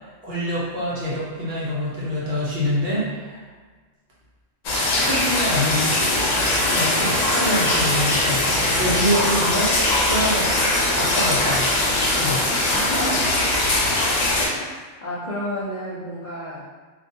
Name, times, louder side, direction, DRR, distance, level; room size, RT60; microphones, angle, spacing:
voice 1, 0.0-3.4 4.7-6.0 6.7-9.7 10.1-10.5 10.9-11.7 12.2-12.4, equal, 55° right, -7 dB, 0.8 m, -25 dB
sound 1, 4.6-14.5, left 2 dB, 80° left, 1.0 m, -21 dB
Tools, 5.7-14.0, equal, 5° right, 0.5 m, -31 dB
voice 2, 12.7-13.6 14.0-14.5 15.0-16.7, equal, 60° left, -8 dB, 0.4 m, -31 dB
2.4 x 2.2 x 2.6 m, 1.4 s
omnidirectional pair, 1.3 m